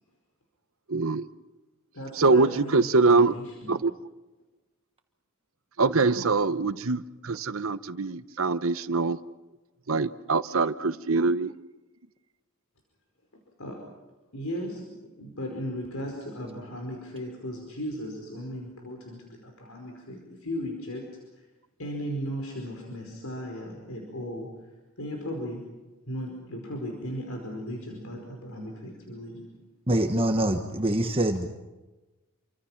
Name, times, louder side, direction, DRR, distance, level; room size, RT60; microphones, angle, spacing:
voice 1, 0.9-1.2 2.2-3.4 3.7-3.9 5.8-9.2 9.9-11.5, right 3 dB, 70° right, 13 dB, 1.0 m, -24 dB
voice 2, 1.9-3.8 13.6-13.8 14.3-14.9 15.2-21.0 21.8-24.5 25.0-25.6 26.1-29.4, equal, 80° left, 1 dB, 5.0 m, -36 dB
voice 3, 29.9-31.5, right 1 dB, 25° right, 5 dB, 1.3 m, -24 dB
28.5 x 25.0 x 5.9 m, 1.1 s
head